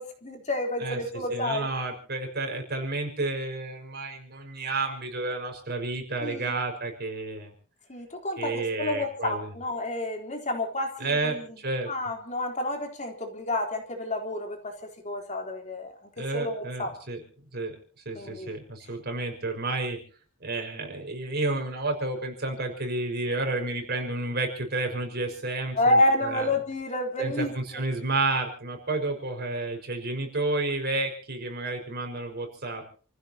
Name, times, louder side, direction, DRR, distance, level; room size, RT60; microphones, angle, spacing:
voice 1, 0.0-1.7 6.2-6.6 7.9-11.4 11.9-16.9 18.2-18.6 25.8-27.8, left 1 dB, 35° left, 2 dB, 3.7 m, -29 dB
voice 2, 1.3-7.5 8.4-9.5 11.0-11.9 16.2-17.2 17.5-17.8 18.1-20.0 20.4-26.5 27.2-32.9, right 2 dB, 50° right, 4 dB, 5.7 m, -31 dB
30.0 x 15.5 x 3.0 m, 0.41 s
head